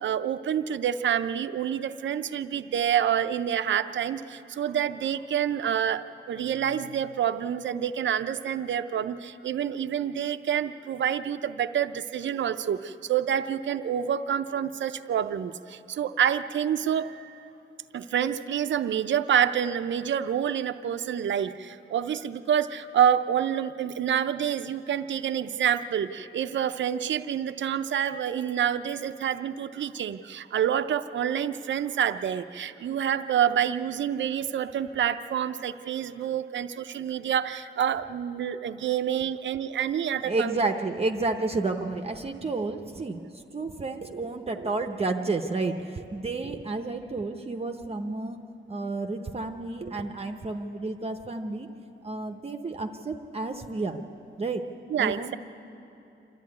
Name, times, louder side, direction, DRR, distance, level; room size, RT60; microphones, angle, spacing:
voice 1, 0.0-17.4 17.9-40.6 54.9-55.4, right 9 dB, 65° right, 10 dB, 0.6 m, -27 dB
voice 2, 40.2-48.4 48.7-51.7 52.0-54.0 54.4-54.7 55.0-55.4, right 3 dB, 30° right, 5 dB, 0.7 m, -31 dB
27.0 x 13.0 x 9.5 m, 2.9 s
wide cardioid pair, 170°, 20 cm